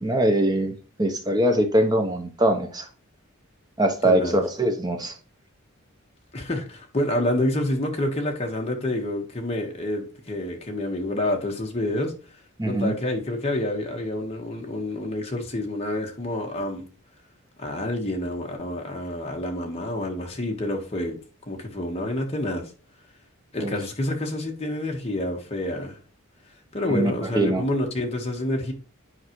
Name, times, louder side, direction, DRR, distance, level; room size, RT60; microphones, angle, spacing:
voice 1, 0.0-2.9 3.8-5.1 12.6-12.9 23.6-23.8 26.9-27.6, right 1 dB, 20° right, 0.9 m, -22 dB
voice 2, 4.0-4.4 6.3-12.1 12.6-16.8 17.6-21.2 21.5-22.6 23.5-26.0 26.7-28.7, left 1 dB, 30° left, 1.5 m, -28 dB
9.8 x 4.8 x 3.1 m
head